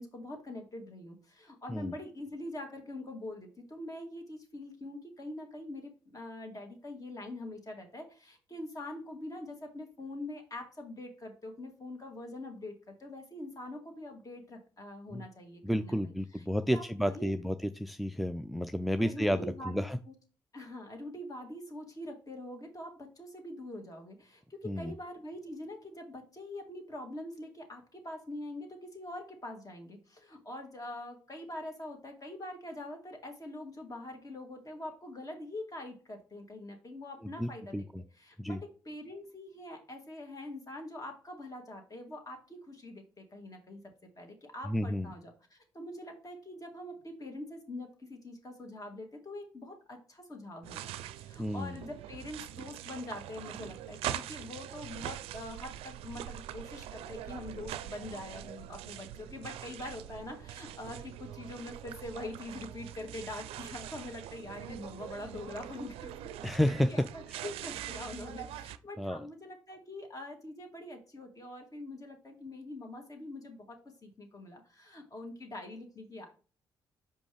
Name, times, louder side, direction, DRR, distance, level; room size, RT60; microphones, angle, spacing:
voice 1, 0.0-17.4 19.0-20.1 20.5-37.9 38.2-43.8 44.2-66.3 66.9-73.8 74.0-76.3, left 1 dB, 35° left, 3 dB, 2.2 m, -44 dB
voice 2, 15.6-20.0 24.6-24.9 37.4-38.0 38.4-38.6 44.7-45.1 51.4-51.8 66.4-67.0 67.3-67.4 69.0-69.2, equal, ahead, 10 dB, 0.4 m, -31 dB
sound 1, 50.6-68.8, right 12 dB, 75° right, 0.4 m, -43 dB
5.6 x 5.1 x 3.4 m, 0.37 s
hypercardioid pair, 50°, 10 cm